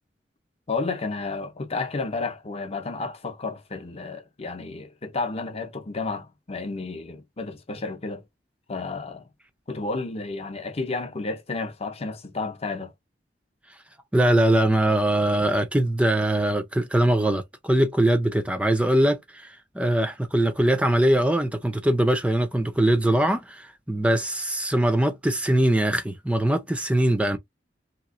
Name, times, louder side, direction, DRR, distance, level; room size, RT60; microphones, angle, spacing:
voice 1, 0.7-8.2 8.7-9.3 9.7-12.9, left 3 dB, 35° left, 0.6 m, -31 dB
voice 2, 14.1-27.4, right 1 dB, 5° right, 0.4 m, -22 dB
3.4 x 2.9 x 2.5 m
head